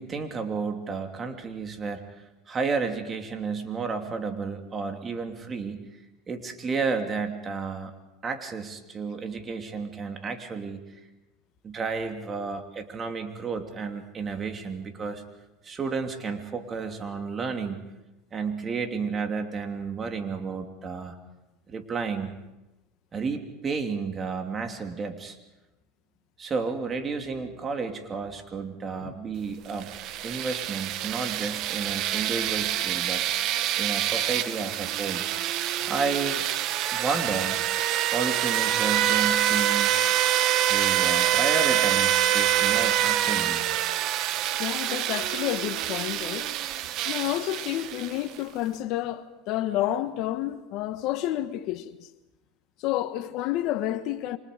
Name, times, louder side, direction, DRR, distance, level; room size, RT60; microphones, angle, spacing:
voice 1, 0.0-2.0 2.5-5.8 6.3-7.9 8.2-10.8 11.6-15.2 15.6-17.8 18.3-21.2 21.7-22.3 23.1-25.4 26.4-29.9 30.2-33.2 33.8-35.3 35.9-36.5 36.9-37.6 38.1-40.2 40.6-43.7, right 4 dB, 30° right, 2.9 m, -32 dB
sound 1, 29.7-48.4, right 12 dB, 55° right, 1.4 m, -26 dB
voice 2, 44.6-46.5 47.0-52.1 52.8-54.4, left 13 dB, 60° left, 1.4 m, -30 dB
29.0 x 25.0 x 5.2 m
supercardioid pair, 100°, 0 cm